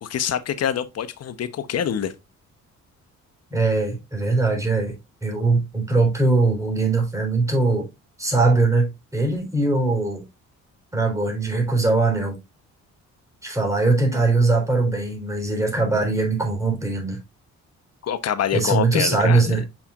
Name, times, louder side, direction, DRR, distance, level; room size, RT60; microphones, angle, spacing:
voice 1, 0.0-2.1 18.0-19.7, left 9 dB, 55° left, 0.9 m, -25 dB
voice 2, 3.5-5.0 5.2-7.9 8.2-10.2 10.9-12.4 13.4-17.2 18.5-19.6, right 3 dB, 10° right, 3.5 m, -21 dB
6.9 x 5.7 x 2.4 m
cardioid pair, 90°, 30 cm